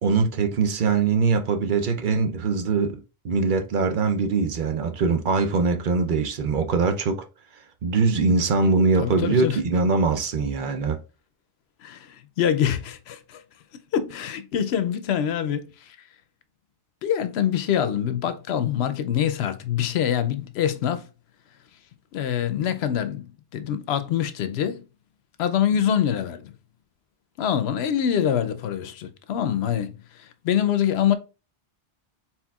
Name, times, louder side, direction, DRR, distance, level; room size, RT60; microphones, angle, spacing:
voice 1, 0.0-3.0 3.2-7.2 7.8-11.0, right 4 dB, 60° right, 0.7 m, -22 dB
voice 2, 9.0-9.6 11.8-13.4 13.9-16.0 17.0-21.1 22.1-24.8 25.4-26.5 27.4-31.1, left 9 dB, 85° left, 0.8 m, -25 dB
4.3 x 4.0 x 2.3 m
omnidirectional pair, 1.0 m